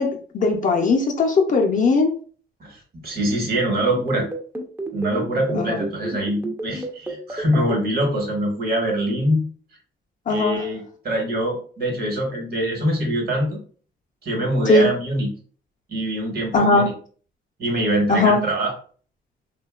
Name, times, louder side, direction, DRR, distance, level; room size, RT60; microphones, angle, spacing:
voice 1, 0.0-2.1 5.5-5.8 10.3-10.6 14.6-14.9 16.5-16.9 18.1-18.4, left 3 dB, 40° left, 2 dB, 0.5 m, -19 dB
voice 2, 2.6-4.3 4.9-9.4 10.3-13.6 14.2-15.3 15.9-16.9 17.6-18.7, right 1 dB, 50° right, 1 dB, 1.1 m, -24 dB
sound 1, 3.9-7.8, right 2 dB, 10° right, 0.5 m, -30 dB
2.7 x 2.2 x 2.3 m, 0.43 s
cardioid pair, 90°, 20 cm